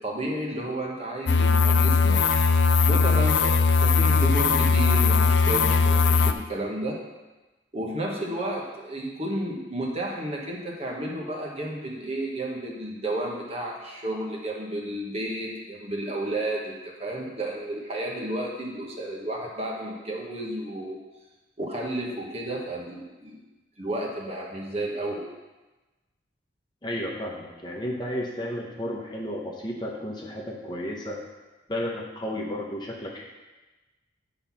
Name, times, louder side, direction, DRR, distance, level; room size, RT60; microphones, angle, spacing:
voice 1, 0.0-2.2 2.9-3.5 3.8-7.0 7.7-16.7 17.0-21.0 21.6-23.4 23.8-25.2, right 1 dB, 35° right, -1 dB, 1.3 m, -32 dB
sound 1, 1.3-6.3, left 4 dB, 65° left, 0.4 m, -20 dB
voice 2, 26.8-31.2 31.7-33.2, equal, 25° left, -2 dB, 1.0 m, -33 dB
9.0 x 4.0 x 5.9 m, 1.1 s
head